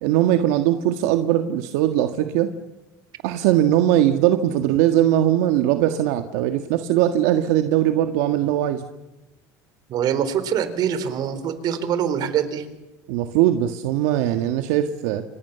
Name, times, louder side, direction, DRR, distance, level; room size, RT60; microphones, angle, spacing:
voice 1, 0.0-2.5 3.2-8.8 13.1-15.2, right 12 dB, 80° right, 7 dB, 1.7 m, -20 dB
voice 2, 9.9-12.7, right 8 dB, 50° right, 12 dB, 4.1 m, -24 dB
28.0 x 26.0 x 7.0 m, 1.0 s
supercardioid pair, 115°, 9 cm